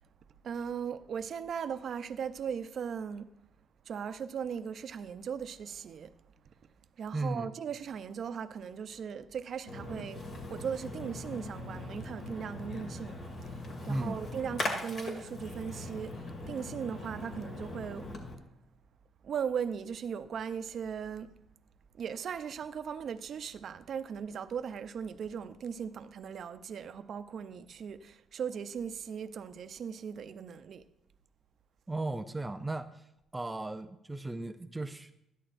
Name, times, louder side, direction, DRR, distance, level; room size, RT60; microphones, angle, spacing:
voice 1, 0.4-3.3 3.9-6.1 7.0-10.2 10.5-18.1 19.2-21.3 22.0-30.8, right 7 dB, 60° right, 0.5 m, -38 dB
voice 2, 7.1-7.5 13.9-14.2 31.9-35.1, right 2 dB, 15° right, 0.4 m, -36 dB
Splash splatter, 9.7-18.3, left 2 dB, 55° left, 2.2 m, -40 dB
12.5 x 11.0 x 2.5 m
cardioid pair, 90°, 0 cm